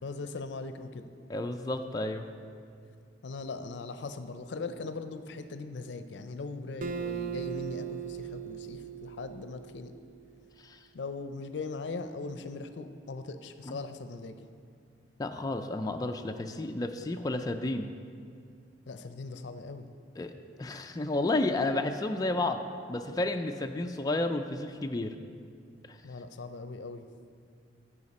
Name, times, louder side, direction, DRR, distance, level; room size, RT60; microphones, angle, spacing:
voice 1, 0.0-1.1 3.2-9.9 10.9-14.5 18.9-19.9 26.0-27.1, left 3 dB, 80° left, 9 dB, 0.5 m, -40 dB
voice 2, 1.3-2.3 10.6-10.8 13.7-13.8 15.2-17.9 20.2-20.3 20.6-22.6 22.9-25.1 25.9-26.0, left 2 dB, 20° left, 5 dB, 0.3 m, -31 dB
Acoustic guitar, 6.8-10.2, right 7 dB, 50° right, 0.4 m, -38 dB
14.5 x 5.0 x 4.2 m, 2.3 s
head